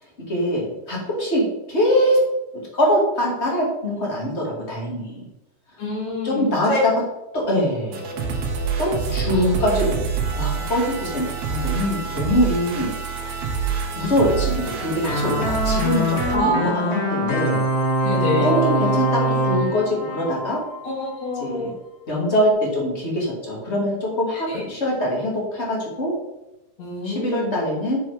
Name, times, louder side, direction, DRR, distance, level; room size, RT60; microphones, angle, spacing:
voice 1, 0.3-2.2 2.5-5.2 6.2-6.9 7.3-8.0 8.8-10.0 10.3-13.4 13.9-17.6 18.4-20.6 21.3-21.7 22.1-26.1 27.0-28.0, equal, 25° left, -2 dB, 1.8 m, -23 dB
voice 2, 5.8-6.8 16.3-17.0 18.0-18.5 20.8-21.7 24.5-24.6 26.8-27.5, left 1 dB, 55° left, -4 dB, 3.6 m, -27 dB
sound 1, 7.9-16.4, right 6 dB, 70° right, 2.2 m, -27 dB
sound 2, 15.0-21.2, equal, 85° left, 3.3 m, -23 dB
8.5 x 4.7 x 4.7 m, 0.94 s
omnidirectional pair, 3.7 m